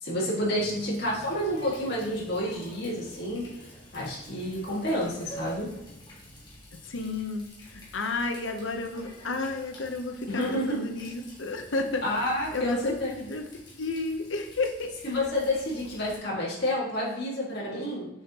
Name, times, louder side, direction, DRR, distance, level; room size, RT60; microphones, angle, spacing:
voice 1, 0.0-3.4 3.9-5.7 10.3-10.8 12.0-13.1 15.0-18.1, left 1 dB, 55° left, -6 dB, 1.9 m, -29 dB
Water tap faucet, 0.5-16.2, equal, 20° left, 1.5 m, -48 dB
voice 2, 6.8-12.0 12.5-13.4 13.8-14.9, left 3 dB, 80° left, 5 dB, 0.8 m, -32 dB
7.0 x 5.6 x 3.0 m, 0.93 s
head